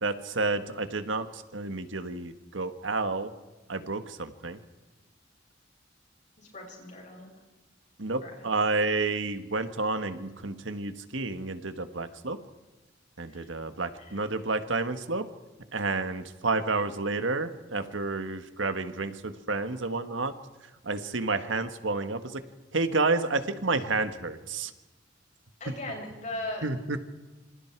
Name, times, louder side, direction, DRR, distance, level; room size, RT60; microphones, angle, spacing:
voice 1, 0.0-3.3 3.7-4.6 8.0-12.4 13.2-15.2 15.7-20.3 20.8-22.4 22.7-24.7 26.6-27.0, right 3 dB, 85° right, 9 dB, 1.6 m, -30 dB
voice 2, 6.4-7.3 8.2-8.5 13.3-13.5 14.0-14.3 25.6-26.7, left 1 dB, 40° left, 0 dB, 7.2 m, -39 dB
27.0 x 26.0 x 4.7 m, 1.2 s
head